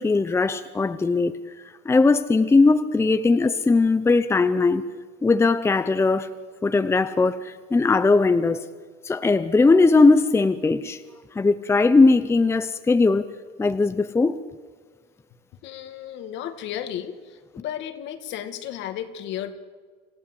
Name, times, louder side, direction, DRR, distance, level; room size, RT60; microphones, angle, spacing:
voice 1, 0.0-1.3 1.8-4.8 5.2-6.3 6.6-8.6 9.0-11.0 11.3-13.2 13.6-14.4, left 3 dB, 10° left, 0.8 m, -19 dB
voice 2, 15.6-19.6, left 10 dB, 65° left, 2.2 m, -34 dB
27.0 x 16.0 x 7.9 m
cardioid pair, 130°, 21 cm